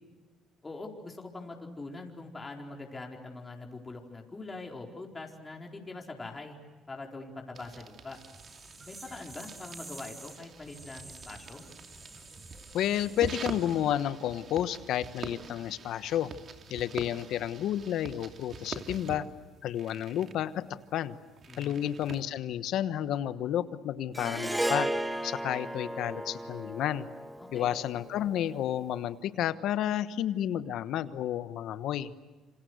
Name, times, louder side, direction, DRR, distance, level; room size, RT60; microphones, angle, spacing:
voice 1, 0.6-6.6 6.9-8.2 8.9-11.6 21.5-21.8 27.4-27.7, left 3 dB, 25° left, 1 dB, 4.4 m, -43 dB
sound 1, 7.5-22.2, right 5 dB, 50° right, 2.9 m, -46 dB
sound 2, 8.1-14.0, right 2 dB, 25° right, 5.5 m, -50 dB
voice 2, 12.7-16.3 16.7-19.3 19.6-21.2 21.6-24.9 25.2-27.1 27.5-32.1, left 11 dB, 70° left, 13 dB, 1.1 m, -31 dB
Harp, 24.1-28.6, right 1 dB, 10° right, 1.4 m, -34 dB
28.0 x 26.5 x 8.1 m, 1.3 s
supercardioid pair, 80°, 0 cm